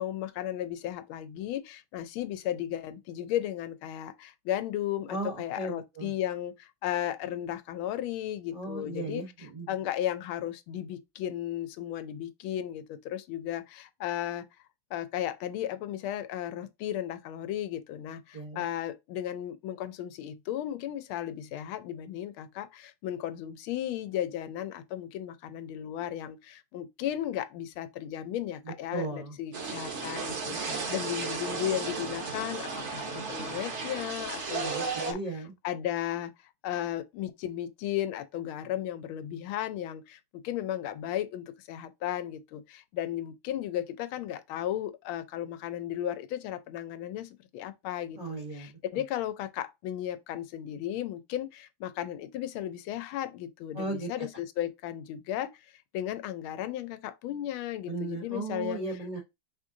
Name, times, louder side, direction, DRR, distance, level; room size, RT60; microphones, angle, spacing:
voice 1, 0.0-9.2 9.7-14.4 14.9-35.2 35.6-36.3 36.6-55.5 55.9-58.8, left 11 dB, 85° left, 1.5 m, -35 dB
voice 2, 5.1-6.1 8.5-9.7 18.3-18.6 28.6-29.4 30.5-30.8 34.6-35.5 48.2-48.7 53.7-54.3 57.9-59.2, right 2 dB, 65° right, 0.3 m, -36 dB
sound 1, 29.5-35.1, right 4 dB, 45° right, 1.0 m, -34 dB
4.8 x 3.6 x 2.6 m
omnidirectional pair, 2.3 m